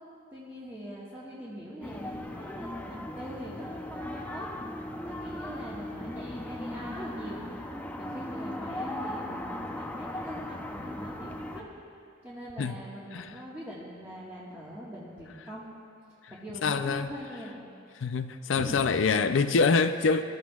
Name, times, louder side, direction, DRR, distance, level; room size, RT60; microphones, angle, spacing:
voice 1, 0.3-4.5 5.0-7.5 8.0-11.6 12.2-15.7 16.3-17.6 18.5-19.3, equal, 10° right, -9 dB, 1.5 m, -42 dB
sound 1, 1.8-11.6, left 1 dB, 10° left, 0.6 m, -38 dB
voice 2, 16.6-17.1 18.0-20.2, left 4 dB, 70° left, 9 dB, 0.5 m, -25 dB
22.0 x 13.0 x 2.4 m, 2.6 s
head